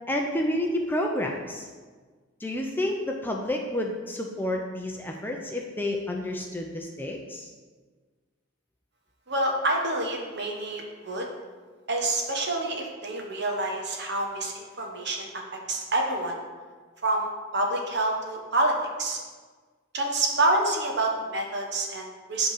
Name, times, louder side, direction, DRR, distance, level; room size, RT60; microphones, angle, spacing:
voice 1, 0.1-1.6 2.4-7.5, left 1 dB, 10° left, 1 dB, 0.5 m, -30 dB
voice 2, 9.3-11.3 11.9-15.3 15.7-16.4 17.0-17.3 17.5-19.2 19.9-22.5, right 2 dB, 55° right, 1 dB, 1.2 m, -27 dB
8.0 x 3.8 x 6.5 m, 1.4 s
head